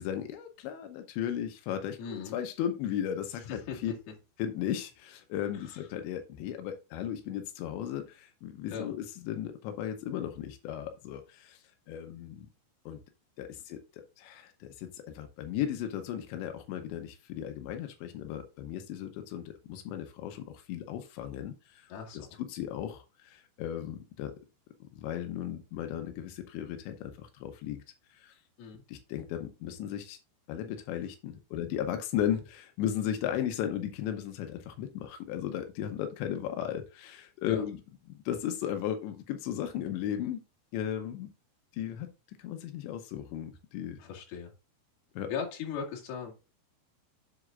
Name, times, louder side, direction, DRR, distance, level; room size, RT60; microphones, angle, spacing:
voice 1, 0.0-3.9 4.4-12.5 12.9-13.0 13.4-13.8 14.2-21.9 22.4-24.3 24.9-27.8 28.1-28.4 28.9-30.2 30.5-37.8 38.3-40.4 40.7-41.3 41.7-42.1 42.4-44.0 45.2-45.3, left 10 dB, 85° left, 3.1 m, -36 dB
voice 2, 2.0-2.4 3.4-3.8 5.7-5.8 8.7-8.9 21.9-22.3 28.6-28.8 37.4-37.6 44.0-44.5 45.3-46.3, left 6 dB, 65° left, 3.7 m, -38 dB
7.9 x 7.6 x 2.4 m
omnidirectional pair, 5.0 m